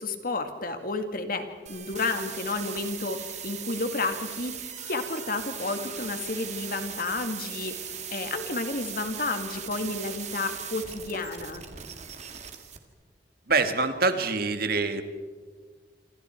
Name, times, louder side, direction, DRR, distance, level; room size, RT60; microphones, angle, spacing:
voice 1, 0.0-11.6, left 3 dB, 55° left, 7 dB, 2.2 m, -31 dB
sound 1, 1.7-12.8, right 8 dB, 40° right, 2.1 m, -39 dB
voice 2, 13.5-15.0, right 3 dB, 60° right, 8 dB, 1.8 m, -25 dB
28.0 x 26.0 x 4.6 m, 1.5 s
head